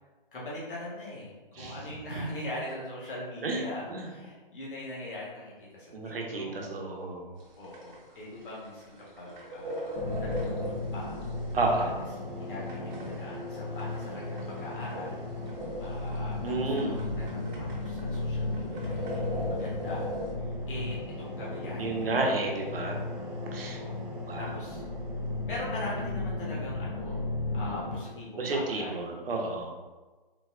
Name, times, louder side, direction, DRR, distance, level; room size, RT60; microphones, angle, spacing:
voice 1, 0.3-6.6 7.6-11.2 11.8-12.0 12.4-15.2 15.8-20.1 20.3-22.4 23.6-24.0 24.4-24.8 25.5-27.2 27.5-29.1, left 1 dB, 65° left, -6 dB, 1.2 m, -41 dB
voice 2, 5.9-7.3 11.5-11.9 16.4-17.0 21.8-23.0 23.5-23.8 24.3-24.5 28.4-29.7, right 2 dB, 80° right, 0 dB, 0.8 m, -31 dB
sound 1, 7.4-20.3, equal, 50° right, 0.9 m, -40 dB
sound 2, 9.9-28.0, left 2 dB, 25° right, 0.7 m, -35 dB
3.9 x 2.2 x 2.4 m, 1.3 s
hypercardioid pair, 160°, 29 cm